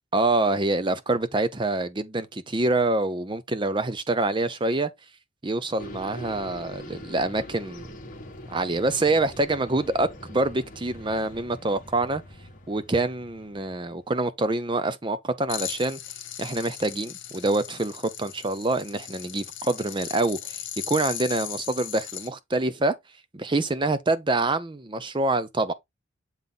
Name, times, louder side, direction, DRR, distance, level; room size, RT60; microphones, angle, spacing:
voice 1, 0.1-4.9 5.4-7.8 8.5-12.2 12.7-16.0 16.4-22.9 23.3-25.7, right 2 dB, 25° right, 0.6 m, -26 dB
sound 1, 5.8-14.1, left 1 dB, 45° left, 1.4 m, -43 dB
sound 2, 15.5-22.3, left 11 dB, 70° left, 1.3 m, -37 dB
7.3 x 3.7 x 3.8 m
head